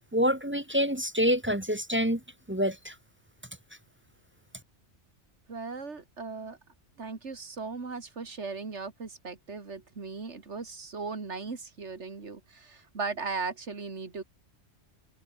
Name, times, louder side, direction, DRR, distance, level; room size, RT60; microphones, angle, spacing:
voice 1, 0.1-2.2 2.5-2.9, equal, 10° right, 1.2 m, -26 dB
voice 2, 5.5-6.6 7.0-14.2, right 4 dB, 75° right, 2.6 m, -37 dB
omnidirectional pair, 1.2 m